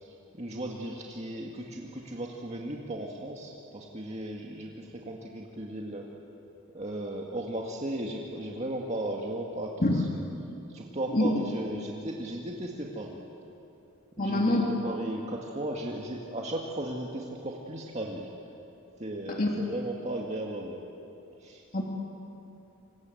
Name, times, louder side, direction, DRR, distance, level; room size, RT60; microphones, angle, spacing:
voice 1, 0.0-6.1 6.7-10.0 10.7-13.2 14.2-18.3 19.0-20.8 21.4-21.6, right 1 dB, 30° right, -1 dB, 2.0 m, -36 dB
voice 2, 14.2-14.7 19.3-19.5 21.7-21.8, left 1 dB, 40° left, 0 dB, 2.7 m, -25 dB
27.5 x 26.0 x 8.0 m, 2.8 s
head